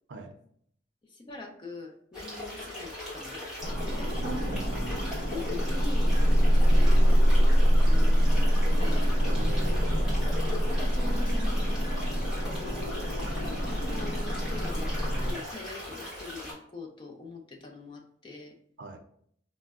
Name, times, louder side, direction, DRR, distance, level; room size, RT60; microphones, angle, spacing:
voice 1, 1.0-4.1 5.3-9.1 10.6-11.8 13.7-14.9 15.2-18.5, left 3 dB, 25° left, 2 dB, 0.4 m, -44 dB
sound 1, 2.1-16.5, left 1 dB, 5° right, 1.1 m, -39 dB
sound 2, 3.6-15.3, equal, 75° left, 0.8 m, -24 dB
voice 2, 4.2-4.9 9.2-10.0 18.8-19.0, right 3 dB, 85° right, 6 dB, 0.4 m, -41 dB
4.3 x 2.1 x 2.3 m, 0.64 s
head